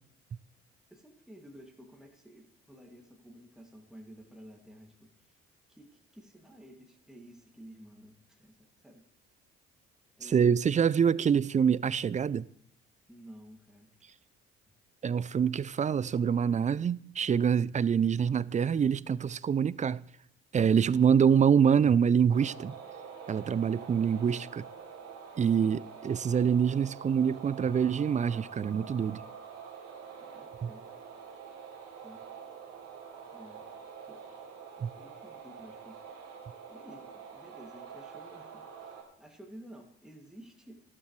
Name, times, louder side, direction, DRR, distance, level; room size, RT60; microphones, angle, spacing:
voice 1, 0.9-5.1 5.7-9.0 10.2-10.6 13.1-13.9 30.2-30.8 32.0-32.2 33.3-33.7 34.1-34.3 34.8-36.0 36.7-40.8, right 1 dB, ahead, 2.3 m, -52 dB
voice 2, 10.2-12.5 15.0-20.0 20.5-22.7 23.3-24.6 25.4-29.2 30.6-30.7 34.8-34.9, right 7 dB, 25° right, 0.4 m, -25 dB
sound 1, 22.3-39.0, right 6 dB, 70° right, 2.8 m, -46 dB
13.0 x 12.0 x 3.2 m
hypercardioid pair, 55°, 30 cm